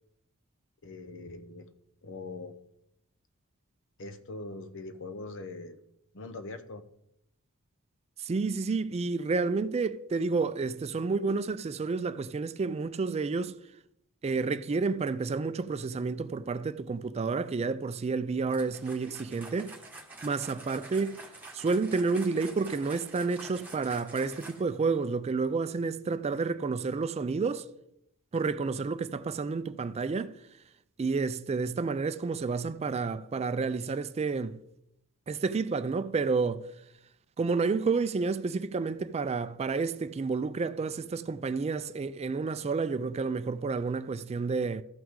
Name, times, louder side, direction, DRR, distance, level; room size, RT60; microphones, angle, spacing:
voice 1, 0.8-1.7 2.0-2.5 4.0-5.8 6.1-6.8, left 3 dB, 60° left, 0.9 m, -42 dB
voice 2, 8.2-13.6 14.2-19.7 20.2-21.2 21.5-27.7 28.3-30.3 31.0-34.6 35.3-36.7 37.4-44.8, right 4 dB, 30° right, 0.3 m, -30 dB
sound 1, 18.5-24.8, right 2 dB, 10° right, 1.6 m, -47 dB
13.5 x 6.0 x 3.7 m
head